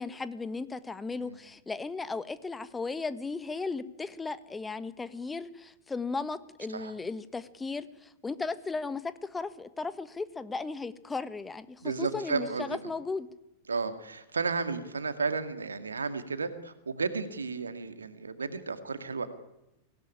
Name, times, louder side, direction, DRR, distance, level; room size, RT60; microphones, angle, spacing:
voice 1, 0.0-13.3, left 4 dB, 10° left, 14 dB, 1.4 m, -36 dB
voice 2, 11.8-12.8 13.7-19.3, right 4 dB, 75° right, 10 dB, 2.1 m, -33 dB
24.0 x 18.0 x 9.9 m, 0.92 s
figure-of-eight pair, 90°, 0 cm